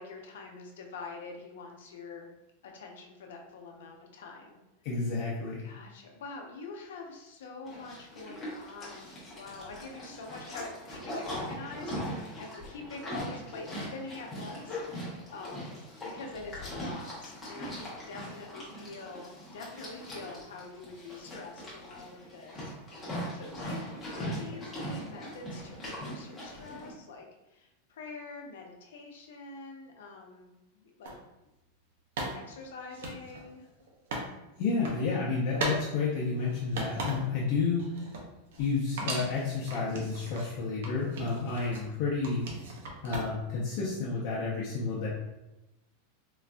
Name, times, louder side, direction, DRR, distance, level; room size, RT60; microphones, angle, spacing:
voice 1, 0.0-2.3 2.6-4.6 5.6-15.7 16.0-22.7 23.1-31.2 32.3-33.7, left 3 dB, 85° left, 1 dB, 0.6 m, -45 dB
voice 2, 4.8-5.7 34.6-37.8 38.6-42.4 43.0-45.1, left 4 dB, 40° left, -7 dB, 0.6 m, -30 dB
Livestock farm animals working animals, 7.7-26.9, equal, 10° left, 0.9 m, -40 dB
sound 1, 31.0-31.2 32.2-34.3 34.6-35.0 35.5-35.8 36.2-37.5 37.8-38.7 39.0-40.5 40.8-41.9 42.2-43.5, right 2 dB, 75° right, 0.7 m, -38 dB
3.9 x 2.5 x 2.2 m, 0.96 s
supercardioid pair, 170°, 0 cm